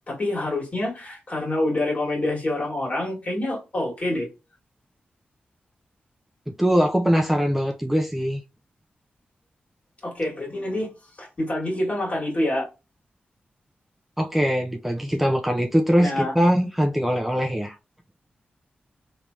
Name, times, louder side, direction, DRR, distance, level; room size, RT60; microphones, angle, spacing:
voice 1, 0.1-4.3 10.0-10.9 11.2-12.6 16.0-16.3, left 1 dB, 45° left, 1.8 m, -26 dB
voice 2, 6.5-8.4 14.2-17.8, equal, 5° right, 0.4 m, -22 dB
3.3 x 3.0 x 2.6 m
cardioid pair, 75°, 3 cm